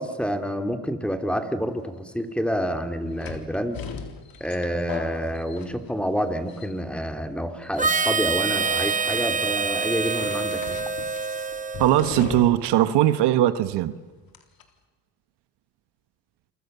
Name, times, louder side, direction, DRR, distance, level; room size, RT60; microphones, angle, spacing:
voice 1, 0.0-3.8 4.4-10.8, equal, 5° left, 7 dB, 3.0 m, -28 dB
sound 1, 1.9-2.0 3.2-6.2 6.5-7.0 7.6-7.9 8.6-9.2 10.0-12.8 13.0-13.1 14.3-14.6, left 5 dB, 60° left, 3.7 m, -39 dB
Harmonica, 7.8-12.5, right 5 dB, 20° right, 1.2 m, -26 dB
voice 2, 11.8-13.9, right 13 dB, 80° right, 12 dB, 1.4 m, -20 dB
28.5 x 25.0 x 6.9 m, 1.3 s
cardioid pair, 90°, 40 cm